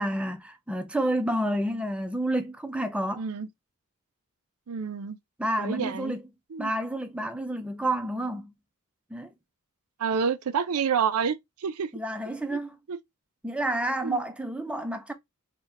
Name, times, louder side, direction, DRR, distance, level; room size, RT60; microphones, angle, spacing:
voice 1, 0.0-3.2 5.4-6.2 6.6-8.5 9.1-9.3 11.9-12.8 13.4-15.1, right 1 dB, 5° right, 0.5 m, -29 dB
voice 2, 3.2-3.5 4.7-5.2 5.6-6.1 6.5-6.7 10.0-11.9 12.5-12.6 12.9-13.0 14.0-14.2, right 6 dB, 70° right, 0.5 m, -28 dB
3.9 x 2.2 x 4.1 m
head